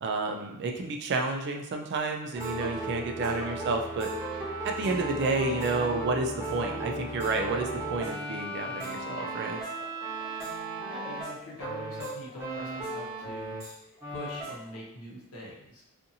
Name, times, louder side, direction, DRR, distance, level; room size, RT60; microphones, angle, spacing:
voice 1, 0.0-4.1 4.6-9.6, right 3 dB, 50° right, 3 dB, 0.3 m, -30 dB
sound 1, 2.3-13.7 14.0-14.6, right 2 dB, 15° right, 1.0 m, -36 dB
voice 2, 3.2-3.7 10.9-13.5 14.1-15.8, left 1 dB, 80° left, -4 dB, 0.9 m, -43 dB
sound 2, 4.3-5.5 6.1-6.2 6.5-7.5 8.1-8.3 8.7-10.3 10.8-11.5 12.0-13.3 13.8-14.8, left 1 dB, 25° left, 0.6 m, -49 dB
2.6 x 2.5 x 2.6 m, 0.79 s
head